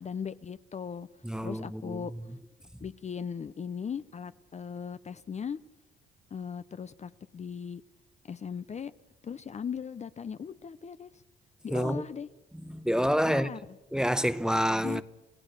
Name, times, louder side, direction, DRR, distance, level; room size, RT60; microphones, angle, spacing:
voice 1, 0.0-1.1 1.4-2.1 2.8-5.6 6.3-7.8 8.2-8.9 9.2-11.2 11.6-12.3 13.2-13.8 14.8-15.0, left 7 dB, 35° left, 0.6 m, -38 dB
voice 2, 1.2-2.0 11.7-12.0 12.7-13.5 13.9-15.0, equal, 5° right, 0.8 m, -27 dB
29.0 x 16.5 x 6.6 m
cardioid pair, 90°, 20 cm